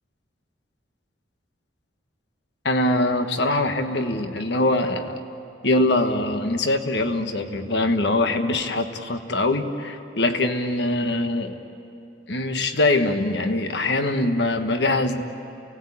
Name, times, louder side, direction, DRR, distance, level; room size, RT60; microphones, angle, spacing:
voice 1, 2.6-5.2 5.6-11.5 12.3-15.2, left 2 dB, 60° left, 7 dB, 1.4 m, -23 dB
28.5 x 18.5 x 8.6 m, 2.9 s
head